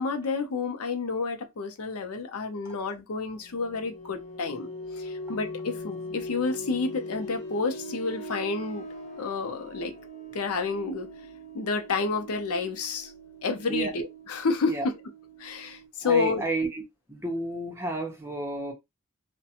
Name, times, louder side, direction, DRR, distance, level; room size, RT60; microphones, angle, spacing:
voice 1, 0.0-4.7 5.0-8.9 9.2-9.9 10.3-11.1 11.5-13.1 13.4-14.9 15.4-16.4, left 4 dB, 80° left, 0.5 m, -30 dB
sound 1, 3.3-15.9, left 1 dB, 30° left, 0.6 m, -41 dB
voice 2, 16.0-16.8 17.1-18.7, right 2 dB, 10° right, 0.7 m, -31 dB
2.4 x 2.1 x 2.7 m
head